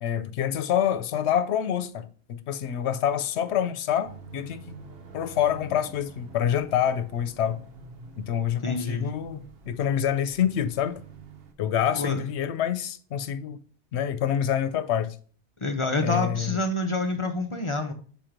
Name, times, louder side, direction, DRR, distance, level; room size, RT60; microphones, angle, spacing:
voice 1, 0.0-4.6 5.1-7.6 8.2-11.0 11.6-13.6 13.9-15.2 16.0-16.6, left 9 dB, 80° left, 0.9 m, -27 dB
sound 1, 4.0-11.5, right 4 dB, 65° right, 1.0 m, -46 dB
voice 2, 8.6-9.1 12.0-12.2 15.6-17.9, left 2 dB, 35° left, 0.6 m, -27 dB
7.0 x 3.0 x 5.0 m
omnidirectional pair, 1.1 m